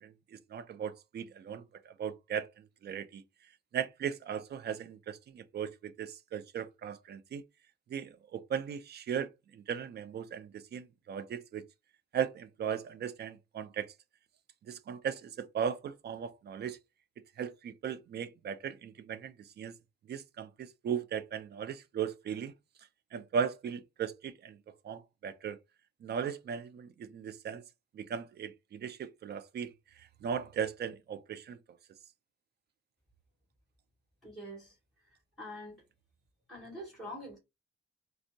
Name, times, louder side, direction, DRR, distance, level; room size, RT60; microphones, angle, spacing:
voice 1, 0.0-3.2 3.7-7.4 7.9-11.6 12.1-13.9 14.7-16.8 17.4-19.7 20.1-22.5 23.1-24.6 24.8-25.6 26.0-27.6 27.9-31.6, right 7 dB, 55° right, 0.5 m, -37 dB
voice 2, 34.2-34.7 35.4-35.8 36.5-37.4, equal, ahead, 2.1 m, -44 dB
4.3 x 2.0 x 2.6 m
cardioid pair, 90°, 21 cm